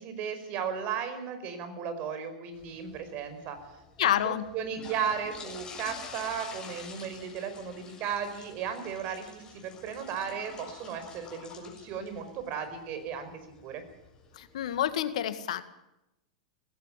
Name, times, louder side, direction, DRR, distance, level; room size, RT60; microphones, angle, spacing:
voice 1, 0.0-3.6 4.0-13.8, right 7 dB, 45° right, 9 dB, 5.1 m, -35 dB
sound 1, 2.5-14.9, left 5 dB, 20° left, 6.9 m, -48 dB
voice 2, 4.0-4.5 14.3-15.6, left 11 dB, 65° left, 11 dB, 1.9 m, -28 dB
18.5 x 16.5 x 8.9 m, 0.89 s
hypercardioid pair, 105°, 4 cm